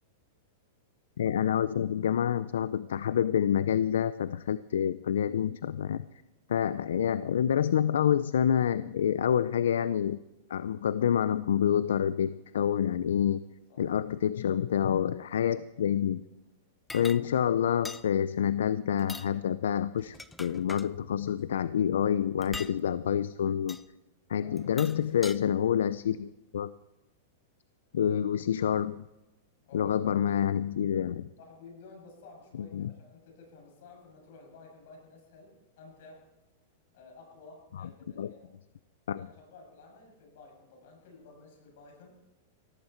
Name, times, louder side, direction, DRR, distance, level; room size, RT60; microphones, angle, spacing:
voice 1, 1.2-6.0 6.5-10.2 10.5-13.4 13.8-16.2 16.9-23.8 24.3-26.7 27.9-29.1 29.7-31.3 32.6-32.9 37.7-37.9 38.2-38.3 39.1-39.3, left 9 dB, 85° left, 15 dB, 0.4 m, -27 dB
sound 1, 16.9-17.2 17.8-18.1 19.0-19.3 20.0-20.9 22.4-22.8 23.7-23.8 24.6-25.4, left 3 dB, 10° left, 0.5 m, -42 dB
voice 2, 24.3-24.7 29.6-30.3 31.4-36.2 36.9-38.5 39.2-42.2, left 3 dB, 65° left, 1 dB, 7.3 m, -53 dB
17.0 x 15.5 x 4.5 m, 1.0 s
hypercardioid pair, 135°, 0 cm